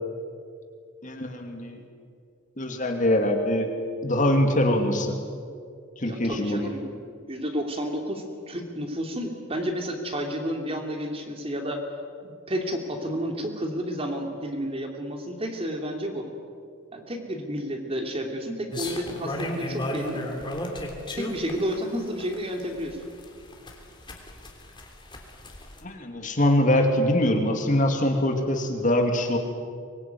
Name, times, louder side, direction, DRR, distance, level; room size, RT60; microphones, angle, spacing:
voice 1, 1.0-1.8 2.6-3.7 4.0-5.1 6.0-6.7 25.8-29.4, left 1 dB, 40° left, 4 dB, 2.7 m, -23 dB
voice 2, 6.0-6.9 7.3-11.8 12.2-16.3 16.9-20.2 21.1-23.0, equal, 30° right, 3 dB, 2.9 m, -31 dB
sound 1, 18.7-25.8, left 1 dB, 25° left, 3.3 m, -34 dB
24.0 x 21.0 x 9.5 m, 2.3 s
head